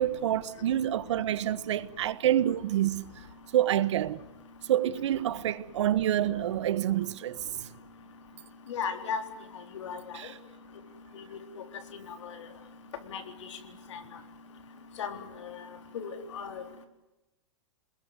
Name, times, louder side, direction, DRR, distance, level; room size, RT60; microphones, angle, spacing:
voice 1, 0.0-3.1 3.5-4.3 4.7-7.4 10.1-10.4, right 12 dB, 70° right, 1.2 m, -27 dB
voice 2, 8.7-9.2 9.7-10.0 13.1-13.2 13.9-14.0 15.0-15.2 15.9-16.6, left 6 dB, 75° left, 4.0 m, -34 dB
28.5 x 21.0 x 9.7 m
hypercardioid pair, 145°, 15 cm